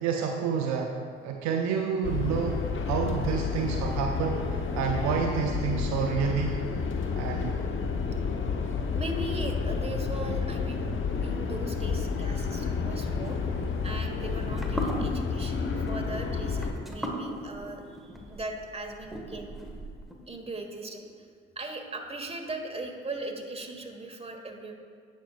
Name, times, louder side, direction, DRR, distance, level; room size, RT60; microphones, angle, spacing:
voice 1, 0.0-1.0 1.2-6.6 7.2-7.6, right 6 dB, 65° right, 3 dB, 0.7 m, -29 dB
sound 1, 2.0-16.7, left 5 dB, 40° left, 1.0 m, -30 dB
voice 2, 8.9-13.4 13.8-19.6 20.3-21.1 21.5-24.7, right 2 dB, 20° right, 2 dB, 1.5 m, -39 dB
sound 2, 13.2-20.1, equal, ahead, 1.5 m, -38 dB
17.0 x 6.2 x 2.5 m, 2.1 s
hypercardioid pair, 40°, 30 cm